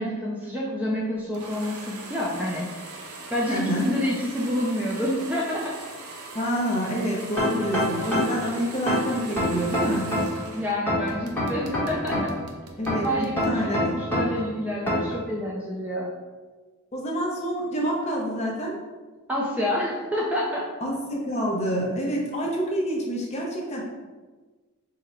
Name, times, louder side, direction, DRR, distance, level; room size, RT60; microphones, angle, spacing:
voice 1, 0.0-2.7 3.3-5.7 10.5-12.2 13.0-16.1 19.3-20.6, left 1 dB, 5° right, -5 dB, 0.4 m, -28 dB
sound 1, 1.3-10.7 11.1-13.6, right 3 dB, 85° right, 0.6 m, -41 dB
voice 2, 3.5-3.9 6.3-10.1 12.8-13.8 16.9-18.8 20.8-23.8, equal, 30° left, -2 dB, 0.7 m, -27 dB
sound 2, 7.4-8.4 8.9-10.4 10.9-12.4 12.9-14.4 14.9-15.2, left 1 dB, 10° left, 1.0 m, -25 dB
3.7 x 2.1 x 4.3 m, 1.3 s
head